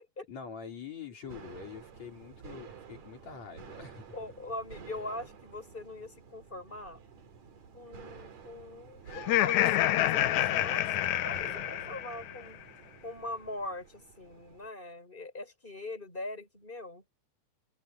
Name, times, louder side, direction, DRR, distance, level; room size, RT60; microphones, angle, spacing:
voice 1, 0.3-4.2, left 6 dB, 65° left, 5.5 m, -45 dB
sound 1, 1.2-14.7, right 7 dB, 70° right, 3.8 m, -51 dB
voice 2, 4.1-7.0 7.7-12.6 13.0-17.0, left 2 dB, 15° left, 6.6 m, -42 dB
Laughter, 9.1-12.4, left 13 dB, 80° left, 2.3 m, -28 dB
omnidirectional pair, 3.3 m